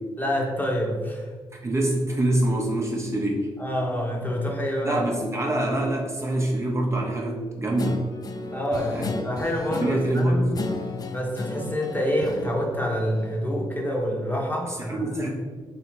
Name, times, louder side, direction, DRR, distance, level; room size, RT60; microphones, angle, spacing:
voice 1, 0.2-1.3 3.6-5.0 8.5-10.6 11.1-15.1, equal, 15° left, -1 dB, 1.0 m, -27 dB
voice 2, 1.5-3.5 4.8-8.0 8.9-9.1 9.3-9.4 9.8-10.5 14.7-15.3, right 1 dB, 25° right, -1 dB, 0.7 m, -25 dB
Guitar, 7.8-13.6, left 3 dB, 40° left, 0.4 m, -35 dB
3.5 x 2.7 x 4.5 m, 1.4 s
cardioid pair, 65°, 11 cm